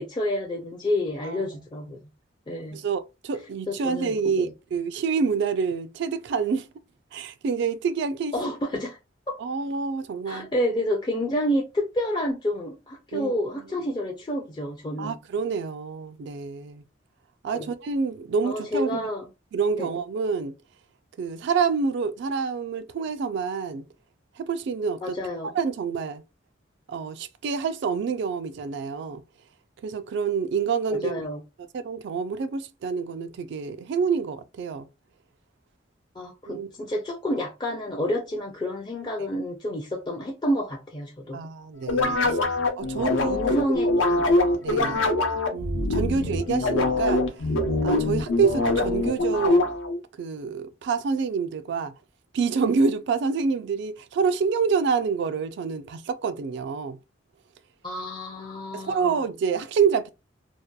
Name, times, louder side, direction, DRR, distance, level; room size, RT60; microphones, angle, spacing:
voice 1, 0.0-2.0 2.5-2.8 3.7-4.5 8.3-9.0 9.3-9.4 10.3-15.1 17.5-17.7 18.4-19.2 19.8-19.9 25.0-25.5 30.9-31.4 36.2-41.4 42.2-42.5 43.2-44.4 44.7-45.0 46.2-46.4 57.8-59.2, left 1 dB, 25° left, 0.4 m, -29 dB
voice 2, 2.7-6.7 7.1-8.3 9.4-10.5 13.1-13.4 15.0-16.8 17.4-19.1 19.5-20.5 21.2-23.8 24.4-25.2 25.5-26.2 26.9-29.2 29.8-31.1 31.7-34.9 36.5-36.7 41.3-42.4 42.8-43.4 44.6-45.1 45.5-47.2 47.8-49.7 50.2-51.9 52.3-57.0 58.7-60.1, right 5 dB, 65° right, 0.3 m, -27 dB
sound 1, 41.9-50.0, left 2 dB, 85° left, 0.6 m, -23 dB
2.7 x 2.2 x 2.2 m
head